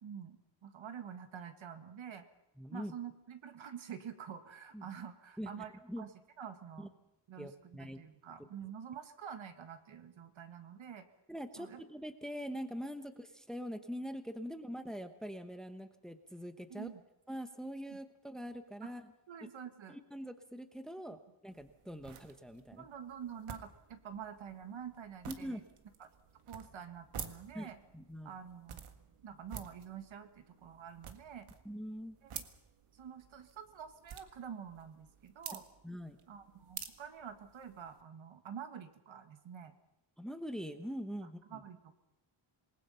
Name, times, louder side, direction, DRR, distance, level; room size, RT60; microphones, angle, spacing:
voice 1, 0.0-2.2 2.7-6.1 6.4-6.9 7.3-11.1 11.6-11.8 16.7-17.0 17.9-18.0 18.8-19.0 19.3-20.0 22.7-25.6 26.0-26.1 26.5-27.8 28.2-28.8 29.2-31.5 32.2-32.5 32.9-35.7 36.3-39.8 41.5-41.9, right 8 dB, 70° right, 9 dB, 1.9 m, -47 dB
voice 2, 2.6-2.9 4.7-4.9 5.4-6.1 6.8-6.9 7.4-8.0 11.3-16.9 17.3-19.1 19.9-22.8 25.3-25.6 27.5-27.7 27.9-28.4 31.6-32.2 35.8-36.2 40.2-41.6, equal, ahead, 9 dB, 1.1 m, -43 dB
sound 1, 21.5-38.0, right 8 dB, 85° right, 1.8 m, -51 dB
27.0 x 20.5 x 5.7 m, 0.87 s
wide cardioid pair, 175°, 49 cm